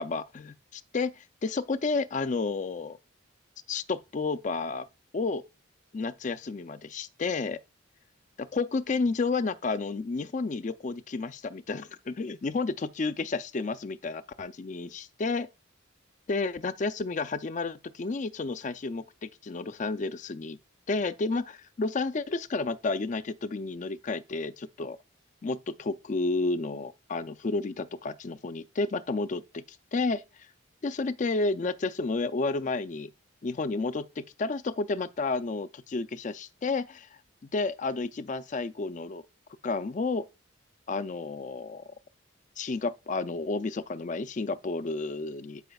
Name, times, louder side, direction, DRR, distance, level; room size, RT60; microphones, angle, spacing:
voice 1, 0.0-3.0 3.7-4.9 5.1-5.5 5.9-7.6 8.4-15.5 16.3-20.6 20.9-25.0 25.4-30.2 30.8-33.1 33.4-37.1 37.5-39.2 39.6-40.3 40.9-41.8 42.6-45.6, left 3 dB, 40° left, 0.4 m, -31 dB
13.0 x 5.0 x 2.3 m
head